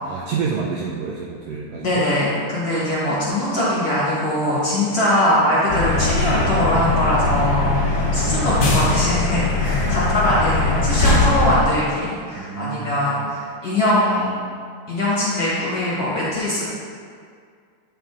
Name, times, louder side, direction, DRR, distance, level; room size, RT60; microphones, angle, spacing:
voice 1, 0.0-2.1 8.0-8.5 9.8-10.0 12.4-13.3, right 5 dB, 90° right, -2 dB, 1.4 m, -29 dB
voice 2, 1.8-14.3 14.9-16.7, left 1 dB, 45° left, -8 dB, 1.2 m, -21 dB
sound 1, 5.7-11.6, left 3 dB, 80° left, 0.9 m, -20 dB
9.1 x 5.0 x 3.6 m, 2.1 s
omnidirectional pair, 3.5 m